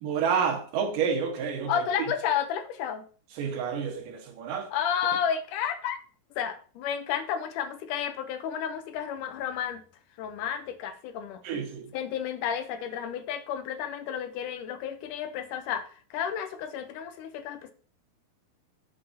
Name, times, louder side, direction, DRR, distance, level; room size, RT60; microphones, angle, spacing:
voice 1, 0.0-1.9 3.3-4.7 11.4-11.9, right 6 dB, 80° right, 2.9 m, -29 dB
voice 2, 1.7-3.1 4.7-6.0 6.4-9.8 10.2-11.4 11.9-17.7, left 8 dB, 80° left, 2.2 m, -31 dB
9.0 x 7.6 x 2.7 m
omnidirectional pair, 3.8 m